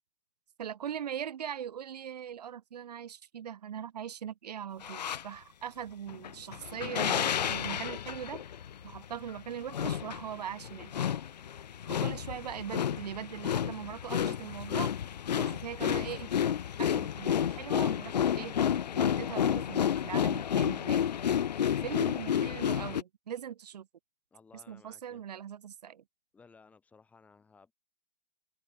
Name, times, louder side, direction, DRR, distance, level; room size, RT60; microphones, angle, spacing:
voice 1, 0.6-8.4 8.8-10.9 11.9-14.9 15.4-16.3 16.8-18.6 18.9-21.0 21.8-23.9 24.7-26.0, right 9 dB, 70° right, 1.8 m, -40 dB
sound 1, 4.8-5.2 6.1-23.0, left 9 dB, 80° left, 1.3 m, -31 dB
voice 2, 21.5-21.9 24.3-25.2 26.3-27.7, left 5 dB, 5° left, 7.7 m, -58 dB
open air
hypercardioid pair, 170°, 21 cm